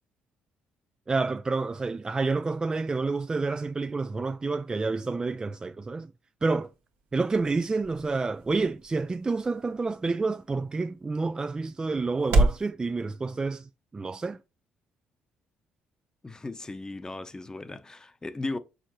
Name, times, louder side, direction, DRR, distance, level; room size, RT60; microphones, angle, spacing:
voice 1, 1.1-6.1 6.4-6.7 7.1-14.4, right 3 dB, 25° right, 0.3 m, -29 dB
sound 1, 6.4-12.7, right 2 dB, 90° right, 1.5 m, -31 dB
voice 2, 16.2-18.6, left 2 dB, 20° left, 0.8 m, -36 dB
6.6 x 5.0 x 3.0 m
cardioid pair, 85°, 3 cm